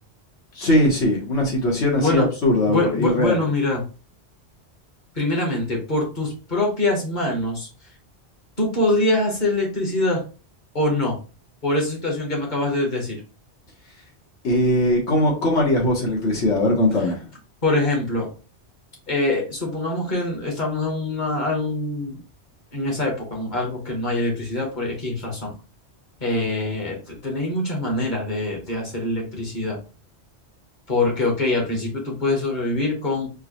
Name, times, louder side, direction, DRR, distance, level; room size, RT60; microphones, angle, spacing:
voice 1, 0.6-3.4 14.4-17.3, left 1 dB, 85° left, 1.5 m, -20 dB
voice 2, 1.9-2.3 2.7-3.8 5.1-7.7 8.6-10.2 10.7-11.2 11.6-13.2 17.6-18.3 19.1-22.2 22.7-25.5 26.2-29.8 30.9-33.3, left 2 dB, 45° left, 1.4 m, -24 dB
4.6 x 2.2 x 3.0 m
omnidirectional pair, 1.1 m